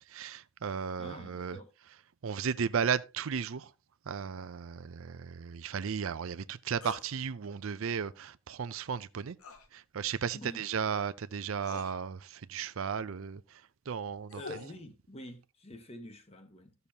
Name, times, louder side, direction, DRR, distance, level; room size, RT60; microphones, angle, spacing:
voice 1, 0.1-1.6 2.2-3.7 4.1-9.4 9.7-13.6 13.9-14.4, right 6 dB, 70° right, 0.5 m, -35 dB
voice 2, 0.9-1.7 10.3-10.6 14.3-16.7, left 1 dB, 30° left, 1.2 m, -47 dB
sound 1, 6.8-7.1 9.4-9.7 11.0-11.1 11.6-11.9 13.9-14.8, left 4 dB, 85° left, 1.6 m, -46 dB
14.5 x 6.8 x 2.8 m
head